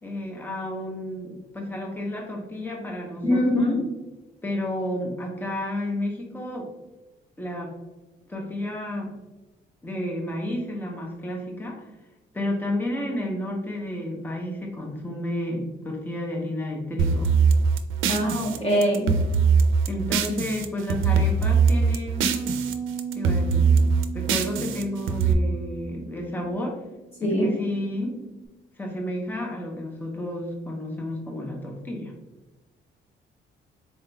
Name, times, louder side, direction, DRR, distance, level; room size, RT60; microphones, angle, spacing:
voice 1, 0.0-3.6 4.4-6.7 7.4-7.7 8.3-9.2 9.8-11.9 12.3-17.3 19.9-22.3 23.1-23.9 24.1-26.8 27.2-28.2 28.8-32.1, left 1 dB, 10° left, 0 dB, 0.8 m, -31 dB
voice 2, 3.2-3.8 18.1-19.1 27.2-27.5, equal, 30° left, -4 dB, 1.2 m, -22 dB
sound 1, 17.0-20.6 20.9-22.7 23.0-25.3, right 5 dB, 90° right, 0.5 m, -21 dB
sound 2, 22.2-28.5, right 6 dB, 10° right, 0.4 m, -36 dB
4.0 x 3.6 x 2.2 m, 1.1 s
cardioid pair, 90°, 20 cm